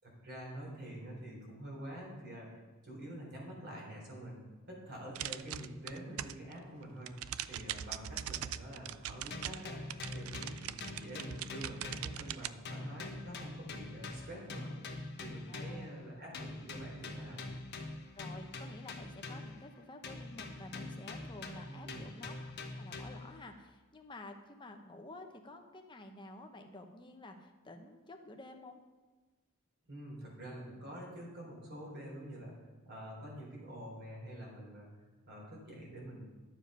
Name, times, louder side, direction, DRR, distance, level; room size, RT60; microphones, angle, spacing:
voice 1, 0.0-7.1 7.5-14.8 15.2-17.4 21.7-22.1 29.9-32.5 32.8-36.2, right 1 dB, 50° right, -2 dB, 3.8 m, -47 dB
sound 1, 5.1-6.5 6.8-12.5, right 11 dB, 85° right, 0.4 m, -41 dB
sound 2, 9.3-12.4 12.7-15.9 16.3-19.7 20.0-23.4, left 2 dB, 55° left, 1.2 m, -44 dB
voice 2, 15.5-15.9 18.1-28.8, left 2 dB, 25° left, 4 dB, 1.0 m, -51 dB
12.0 x 7.4 x 5.6 m, 1.2 s
head